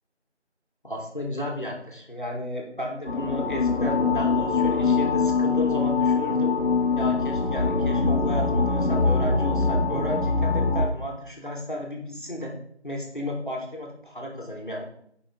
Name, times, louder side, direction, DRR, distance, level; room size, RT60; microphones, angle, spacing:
voice 1, 0.8-6.6 7.0-12.6 12.8-14.8, left 1 dB, 45° left, 0 dB, 1.7 m, -33 dB
sound 1, 3.1-10.9, left 4 dB, 60° left, 1.2 m, -23 dB
11.0 x 5.5 x 3.7 m, 0.67 s
figure-of-eight pair, 180°, 34 cm